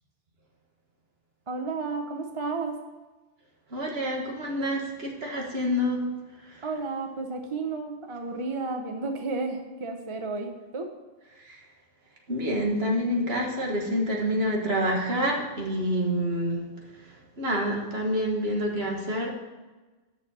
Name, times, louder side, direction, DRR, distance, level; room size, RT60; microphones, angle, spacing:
voice 1, 1.5-2.7 6.6-10.9, right 3 dB, 30° right, 4 dB, 0.7 m, -32 dB
voice 2, 3.7-6.0 11.5-11.6 12.3-16.6 17.4-19.3, equal, 55° right, 0 dB, 1.8 m, -27 dB
7.0 x 6.1 x 7.4 m, 1.2 s
omnidirectional pair, 1.3 m